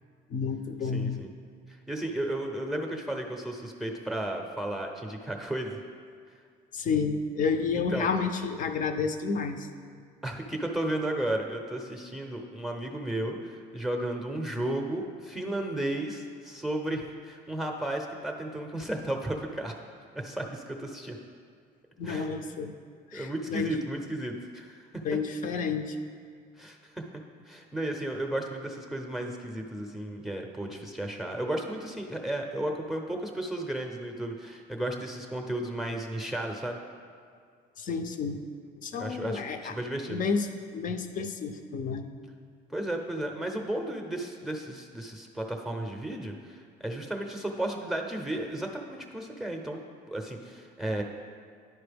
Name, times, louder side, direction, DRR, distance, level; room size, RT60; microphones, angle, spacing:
voice 1, 0.3-1.2 6.7-9.7 22.0-22.7 23.1-23.8 25.0-26.0 37.8-38.4 38.8-39.8 40.1-42.1, left 5 dB, 50° left, 7 dB, 0.6 m, -30 dB
voice 2, 0.9-1.3 1.7-5.8 7.7-8.1 10.2-19.8 20.1-21.2 22.0-22.3 23.1-25.0 26.6-27.0 27.5-36.8 39.0-40.2 42.7-49.8 50.1-51.0, right 1 dB, ahead, 2 dB, 0.6 m, -34 dB
10.5 x 4.3 x 3.4 m, 2.2 s
cardioid pair, 110°, 17 cm